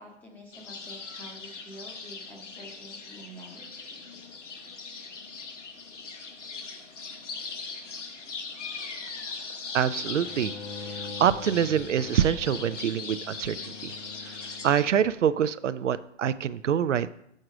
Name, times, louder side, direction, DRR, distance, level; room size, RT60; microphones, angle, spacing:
voice 1, 0.0-3.7, equal, 5° left, 1 dB, 0.7 m, -47 dB
sound 1, 0.5-14.8, left 4 dB, 85° left, 1.3 m, -40 dB
voice 2, 9.7-10.6 10.9-13.9 14.2-14.4 14.6-17.1, right 9 dB, 90° right, 14 dB, 0.5 m, -25 dB
Bowed string instrument, 10.2-15.4, left 3 dB, 50° left, 1.0 m, -44 dB
6.5 x 4.8 x 6.4 m, 0.75 s
hypercardioid pair, 145°, 36 cm